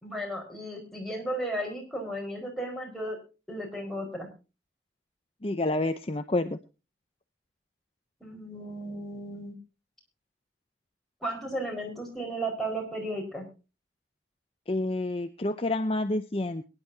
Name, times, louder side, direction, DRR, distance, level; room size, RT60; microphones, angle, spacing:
voice 1, 0.0-3.2 3.5-4.3 8.2-9.6 11.2-13.5, right 1 dB, ahead, -1 dB, 4.6 m, -34 dB
voice 2, 5.4-6.6 14.7-16.6, left 2 dB, 30° left, 8 dB, 0.6 m, -28 dB
22.5 x 10.5 x 2.7 m, 0.31 s
head